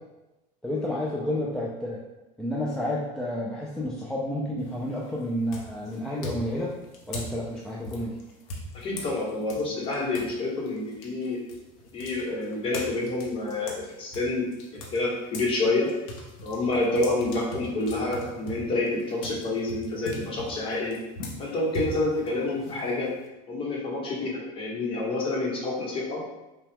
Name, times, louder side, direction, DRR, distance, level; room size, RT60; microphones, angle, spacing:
voice 1, 0.6-2.0 2.4-6.7 7.1-8.2, left 1 dB, 5° left, -5 dB, 0.4 m, -30 dB
sound 1, 4.6-5.0 5.5-10.3 10.7-15.5 15.9-23.3, left 1 dB, 85° left, 0.9 m, -40 dB
voice 2, 8.7-11.4 11.9-15.9 16.4-21.0 21.4-23.1 23.5-26.2, left 2 dB, 30° left, -2 dB, 1.0 m, -28 dB
5.6 x 2.3 x 3.5 m, 1.0 s
cardioid pair, 155°, 17 cm